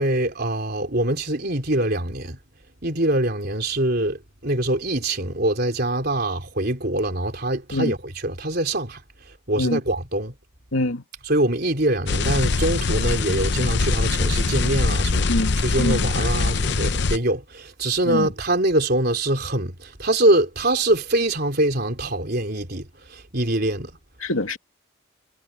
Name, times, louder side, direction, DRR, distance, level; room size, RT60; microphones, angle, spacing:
voice 1, 0.0-2.4 2.8-9.0 9.5-10.3 11.2-23.9, right 1 dB, 45° right, 3.9 m, -24 dB
voice 2, 10.7-11.0 15.3-16.1 18.0-18.3 24.2-24.6, left 1 dB, 75° left, 2.6 m, -24 dB
sound 1, 12.1-17.2, left 3 dB, 55° left, 0.7 m, -22 dB
head